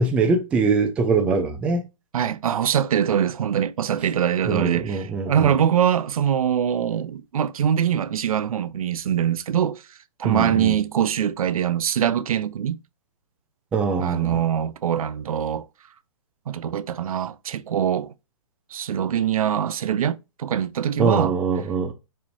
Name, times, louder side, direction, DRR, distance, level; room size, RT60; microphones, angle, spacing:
voice 1, 0.0-1.9 4.5-5.5 10.2-10.7 13.7-14.4 21.0-21.9, right 4 dB, 5° right, 0.3 m, -23 dB
voice 2, 2.1-9.8 10.2-12.8 14.0-15.7 16.5-18.1 18.7-21.4, right 9 dB, 85° right, 0.4 m, -23 dB
4.2 x 2.6 x 3.0 m
hypercardioid pair, 150°, 18 cm